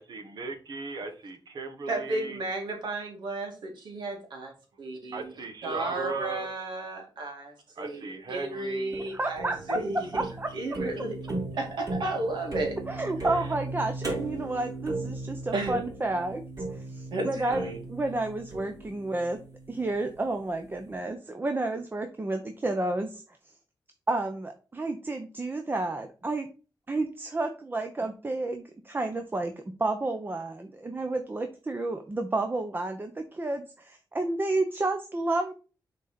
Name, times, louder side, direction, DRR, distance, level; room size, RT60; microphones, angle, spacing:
voice 1, 0.0-2.4 5.1-6.5 7.7-9.0, right 4 dB, 65° right, 7 dB, 1.4 m, -37 dB
voice 2, 1.9-5.2 5.6-10.3 10.5-11.1 11.5-12.8 15.5-15.8 17.1-17.8, right 2 dB, 85° right, 2 dB, 2.4 m, -33 dB
sound 1, 8.9-20.1, right 2 dB, 50° right, 3.8 m, -37 dB
voice 3, 9.1-9.8 10.1-10.5 12.9-16.4 16.7-19.4 19.7-23.5 24.1-26.5 26.9-29.5 29.8-35.6, right 2 dB, 25° right, 5 dB, 0.8 m, -31 dB
6.3 x 4.1 x 5.1 m, 0.34 s
cardioid pair, 95°, 8 cm